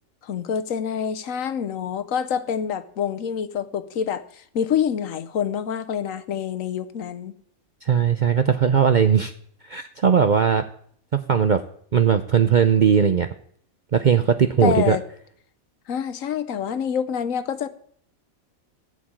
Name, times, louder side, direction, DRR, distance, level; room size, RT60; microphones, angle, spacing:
voice 1, 0.2-7.3 14.6-15.0 15.9-17.7, left 8 dB, 70° left, 1.2 m, -26 dB
voice 2, 7.8-9.3 9.7-10.6 11.1-11.6 11.9-13.3 13.9-15.0, right 7 dB, 55° right, 0.5 m, -18 dB
15.0 x 5.1 x 8.8 m
omnidirectional pair, 1.4 m